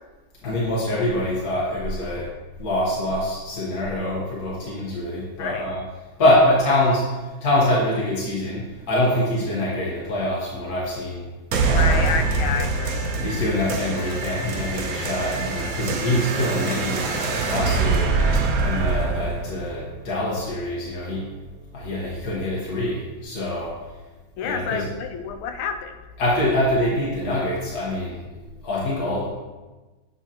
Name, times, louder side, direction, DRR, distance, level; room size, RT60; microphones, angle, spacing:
voice 1, 0.4-2.3 2.6-5.8 6.2-7.2 7.4-11.2 11.6-12.1 13.1-18.3 18.6-21.3 21.7-23.8 24.4-24.9 26.2-29.3, left 1 dB, 50° left, -6 dB, 1.6 m, -24 dB
voice 2, 5.4-5.7 11.7-13.0 24.4-25.9, left 6 dB, 90° left, 7 dB, 1.5 m, -29 dB
sound 1, 11.5-20.5, right 4 dB, 65° right, 0.9 m, -24 dB
7.9 x 5.4 x 2.8 m, 1.2 s
omnidirectional pair, 2.2 m